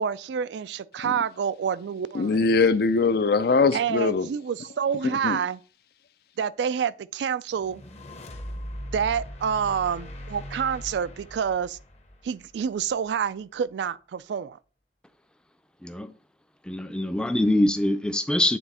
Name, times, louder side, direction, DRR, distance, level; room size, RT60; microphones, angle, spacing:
voice 1, 0.0-2.5 3.7-5.6 6.4-7.8 8.9-11.8 12.2-14.6, right 7 dB, 75° right, 0.3 m, -28 dB
voice 2, 2.1-4.3 5.0-5.4, left 4 dB, 60° left, 0.4 m, -22 dB
sound 1, 7.6-12.9, equal, 35° left, 0.8 m, -40 dB
voice 3, 15.8-16.1 16.7-18.6, left 1 dB, 5° left, 0.4 m, -24 dB
9.2 x 3.4 x 4.2 m
head